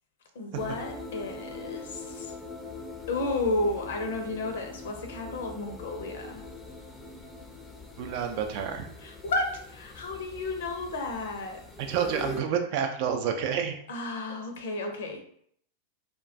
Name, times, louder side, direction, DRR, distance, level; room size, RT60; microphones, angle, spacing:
voice 1, 0.3-2.4 3.1-6.4 9.0-11.6 13.9-15.2, left 2 dB, 70° left, 4 dB, 0.5 m, -32 dB
sound 1, 0.5-12.4, left 3 dB, 10° left, 0.4 m, -42 dB
voice 2, 8.0-8.9 11.8-13.8, right 7 dB, 55° right, 5 dB, 0.4 m, -29 dB
2.2 x 2.2 x 2.6 m, 0.65 s
hypercardioid pair, 95°, 0 cm